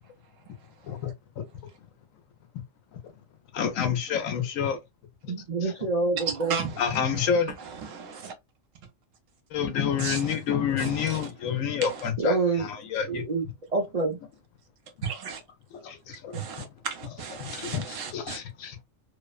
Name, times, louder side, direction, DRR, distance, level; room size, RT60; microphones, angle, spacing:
voice 1, 0.8-1.5 2.9-3.0 3.5-4.8 5.2-5.3 5.6-5.7 6.8-7.6 9.5-13.3 15.7-16.7 17.4-18.8, left 7 dB, 85° left, 1.1 m, -29 dB
voice 2, 5.3-6.6 12.2-12.7 13.1-13.4 13.7-14.2, right 3 dB, 50° right, 0.4 m, -26 dB
voice 3, 6.4-6.8 7.8-8.3 10.0-10.2 10.8-11.2 15.0-15.4 16.3-18.4, right 6 dB, 75° right, 1.1 m, -34 dB
2.7 x 2.1 x 2.3 m
omnidirectional pair, 1.3 m